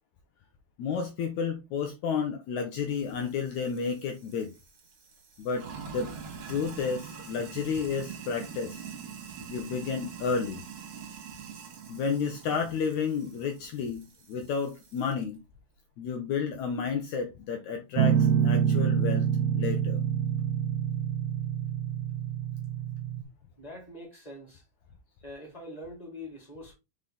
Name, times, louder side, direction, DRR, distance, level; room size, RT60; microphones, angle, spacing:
voice 1, 0.8-4.5 5.4-5.7 5.9-6.1 6.5-8.9 9.5-10.6 11.9-15.4 16.0-19.3 19.5-20.0, left 6 dB, 85° left, 1.6 m, -31 dB
Sink (filling or washing), 2.9-15.2, right 7 dB, 50° right, 2.0 m, -45 dB
Guitar, 18.0-23.2, right 8 dB, 80° right, 2.2 m, -26 dB
voice 2, 23.6-24.6 25.2-26.7, left 1 dB, 10° left, 2.6 m, -44 dB
5.6 x 4.8 x 3.9 m
omnidirectional pair, 4.6 m